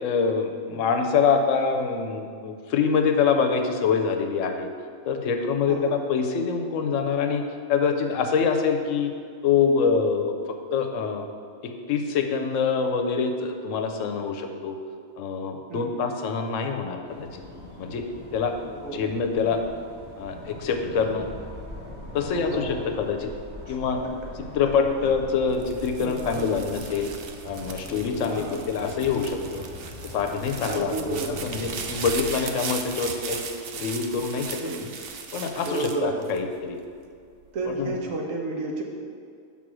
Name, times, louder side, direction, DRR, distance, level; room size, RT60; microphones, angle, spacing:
voice 1, 0.0-4.7 5.0-9.1 9.4-10.3 10.7-11.3 11.6-14.8 15.2-17.3 17.8-18.0 18.3-18.5 18.9-19.6 20.2-21.3 22.1-23.3 23.7-24.0 24.5-27.1 27.4-29.6 30.0-33.4 33.7-34.6 35.3-36.8 37.7-37.9, left 5 dB, 75° left, 5 dB, 0.9 m, -25 dB
voice 2, 15.7-16.0 18.7-19.0 22.3-23.0 23.7-23.8 25.0-25.1 26.0-26.6 28.3-28.6 30.7-31.5 34.6-34.8 35.6-36.2 37.5-38.8, right 2 dB, 80° right, 0 dB, 1.3 m, -32 dB
sound 1, 17.0-32.0, left 1 dB, 10° left, 1.4 m, -42 dB
sound 2, 25.5-36.9 37.4-38.0, right 6 dB, 60° right, 0.6 m, -37 dB
6.1 x 3.8 x 6.0 m, 2.3 s
omnidirectional pair, 1.4 m